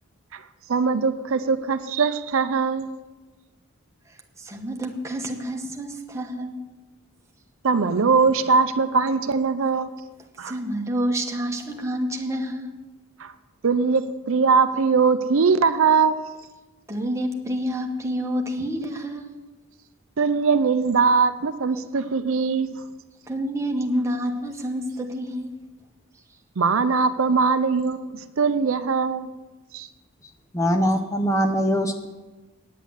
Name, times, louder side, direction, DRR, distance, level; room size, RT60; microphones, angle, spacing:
voice 1, 0.7-2.9 7.6-9.9 10.4-10.5 13.2-13.3 13.6-16.2 20.2-22.8 26.6-29.3 29.7-29.9, right 5 dB, 65° right, 11 dB, 0.6 m, -21 dB
voice 2, 4.4-6.6 10.4-12.8 16.9-19.4 23.3-25.5, equal, 15° right, 1 dB, 1.1 m, -28 dB
voice 3, 30.5-32.1, equal, 15° left, 5 dB, 0.6 m, -22 dB
9.3 x 8.3 x 7.9 m, 1.2 s
head